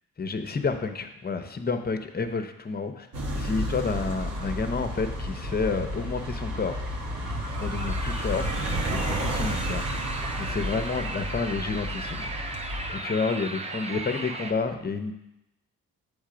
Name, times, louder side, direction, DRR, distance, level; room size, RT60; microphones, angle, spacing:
voice 1, 0.2-3.1 3.3-6.8 7.6-8.5 8.9-9.8 10.4-12.3 12.9-15.1, left 4 dB, 30° left, 8 dB, 0.7 m, -30 dB
sound 1, 3.1-13.0, equal, 65° right, 1.3 m, -31 dB
sound 2, 3.7-14.5, right 2 dB, 20° right, 0.7 m, -38 dB
7.2 x 3.3 x 5.0 m, 0.88 s
supercardioid pair, 55°, 34 cm